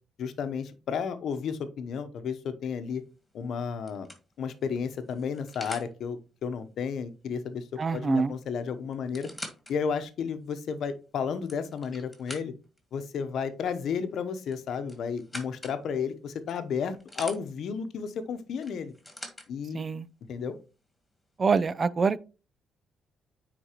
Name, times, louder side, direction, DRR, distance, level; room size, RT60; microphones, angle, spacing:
voice 1, 0.2-3.0 3.3-4.1 4.4-9.3 9.7-12.5 12.9-18.9 19.5-19.8 20.3-20.6, left 6 dB, 70° left, 0.8 m, -32 dB
sound 1, 3.0-3.3 3.9-5.9 8.0-8.1 8.3-8.4 8.9-9.7 10.3-10.4 11.2-12.8 14.5-15.8 16.5-17.4 18.6-19.5 20.4-20.5, left 1 dB, 10° left, 1.9 m, -44 dB
voice 2, 7.8-8.3 19.7-20.1 21.4-22.2, right 4 dB, 40° right, 0.4 m, -25 dB
9.3 x 3.9 x 3.0 m
cardioid pair, 90°, 0 cm